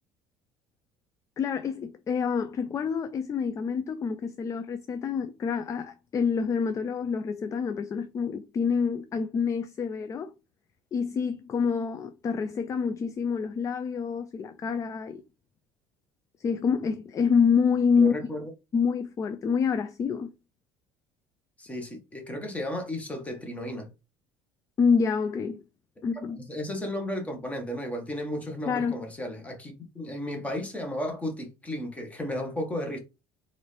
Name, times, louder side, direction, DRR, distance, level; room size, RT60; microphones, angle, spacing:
voice 1, 1.4-10.3 10.9-15.2 16.4-18.1 18.7-20.3 24.8-25.6 26.0-26.4 28.7-28.9, left 6 dB, 30° left, 0.4 m, -27 dB
voice 2, 18.0-18.5 21.6-23.9 26.5-33.0, equal, 15° left, 1.3 m, -34 dB
3.8 x 2.6 x 3.3 m
supercardioid pair, 105°, 10 cm